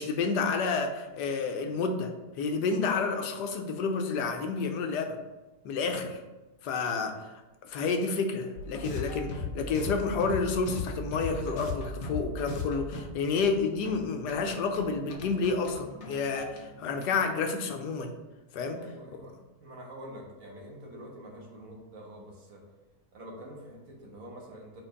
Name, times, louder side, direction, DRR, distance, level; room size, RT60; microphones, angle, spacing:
voice 1, 0.0-2.1 2.4-5.2 5.6-6.2 6.6-7.3 7.6-18.1 18.5-18.8, left 4 dB, 90° left, 5 dB, 1.3 m, -30 dB
sound 1, 8.6-17.2, left 3 dB, 50° left, 1.2 m, -38 dB
voice 2, 18.8-19.3 19.6-22.6 23.1-24.8, equal, 55° right, -1 dB, 1.6 m, -46 dB
4.5 x 4.3 x 5.1 m, 1.1 s
omnidirectional pair, 1.7 m